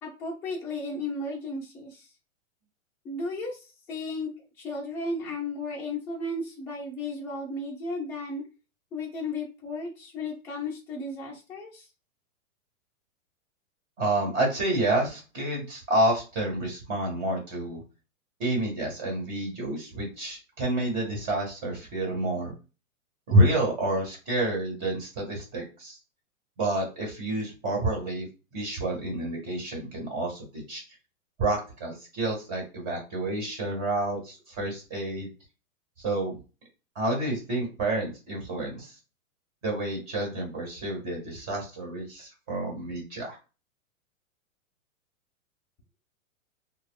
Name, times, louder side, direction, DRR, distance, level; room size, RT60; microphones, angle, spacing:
voice 1, 0.0-2.1 3.0-8.4 8.9-11.9, left 2 dB, 5° left, -6 dB, 0.3 m, -34 dB
voice 2, 14.0-17.8 18.4-22.5 23.3-26.0 26.6-28.3 28.5-30.8 31.4-35.3 36.0-36.3 36.9-38.9 39.6-43.3, right 1 dB, 30° right, 0 dB, 1.5 m, -29 dB
3.4 x 2.1 x 2.3 m, 0.31 s
hypercardioid pair, 150°, 41 cm